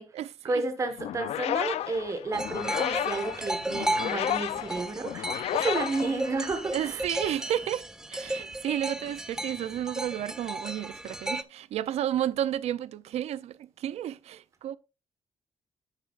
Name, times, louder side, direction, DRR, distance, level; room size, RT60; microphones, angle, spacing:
voice 1, 0.4-7.0, right 3 dB, 30° right, 1.3 m, -31 dB
sound 1, 1.0-6.8, left 12 dB, 80° left, 0.4 m, -32 dB
sound 2, 2.3-11.4, right 1 dB, 5° right, 0.3 m, -34 dB
voice 2, 6.7-7.8 8.1-14.8, right 11 dB, 80° right, 0.5 m, -32 dB
9.8 x 9.2 x 2.4 m
wide cardioid pair, 160°, 11 cm